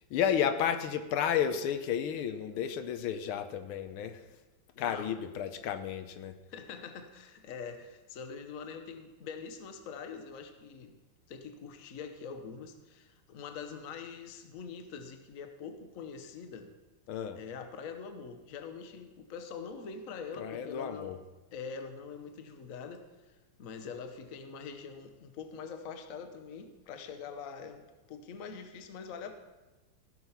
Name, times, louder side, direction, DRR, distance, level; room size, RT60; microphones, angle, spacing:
voice 1, 0.1-4.2 4.8-6.4 17.1-17.4 20.4-21.2, left 8 dB, 80° left, 9 dB, 1.6 m, -32 dB
voice 2, 4.7-5.1 6.5-11.0 11.3-16.7 17.4-21.2 21.5-23.0 23.6-29.3, left 5 dB, 50° left, 7 dB, 1.1 m, -44 dB
15.5 x 6.3 x 5.6 m, 1.1 s
omnidirectional pair, 2.3 m